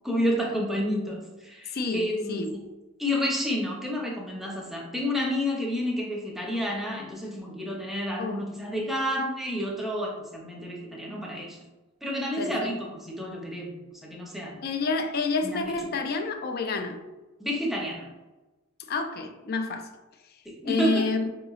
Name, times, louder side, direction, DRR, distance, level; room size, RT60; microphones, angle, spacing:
voice 1, 0.0-2.6 3.0-11.6 12.0-13.8 14.0-14.6 15.4-15.8 17.4-18.1 20.5-21.1, equal, ahead, 0.6 m, -30 dB
voice 2, 1.7-2.5 8.2-8.4 12.4-12.7 14.6-17.0 18.9-19.9 20.7-21.3, left 4 dB, 45° left, 0.4 m, -29 dB
4.9 x 2.9 x 2.3 m
head